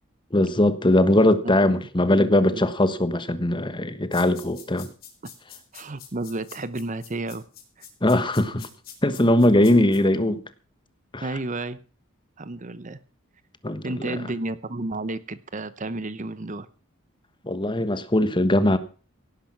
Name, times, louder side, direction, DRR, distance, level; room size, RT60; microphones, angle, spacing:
voice 1, 0.3-4.9 8.0-8.7 9.0-10.4 11.1-11.3 13.6-14.2 17.4-18.8, left 1 dB, 25° left, 1.3 m, -20 dB
voice 2, 1.4-1.7 2.0-2.7 5.7-7.4 7.8-7.9 11.2-11.8 12.4-13.0 13.8-16.7, right 2 dB, 35° right, 0.9 m, -32 dB
sound 1, 4.1-10.0, left 9 dB, 45° left, 4.7 m, -45 dB
17.5 x 10.5 x 5.9 m
head